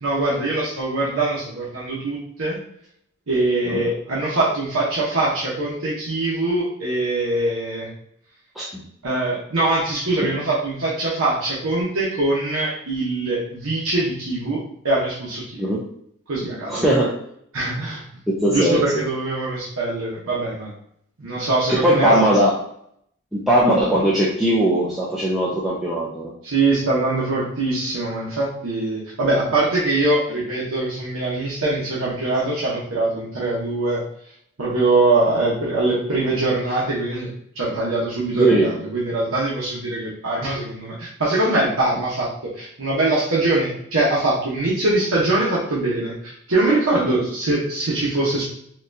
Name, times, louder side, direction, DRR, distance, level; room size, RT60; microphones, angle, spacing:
voice 1, 0.0-2.6 3.3-7.9 9.0-15.7 16.3-16.9 17.5-18.0 18.5-20.7 21.2-22.2 26.4-34.0 34.6-37.3 37.5-48.4, right 2 dB, 75° right, -6 dB, 0.9 m, -22 dB
voice 2, 16.7-17.1 18.3-19.0 21.7-22.6 23.3-26.3 38.4-38.7 47.0-47.2, right 1 dB, ahead, -7 dB, 0.4 m, -19 dB
4.0 x 2.4 x 2.6 m, 0.69 s
head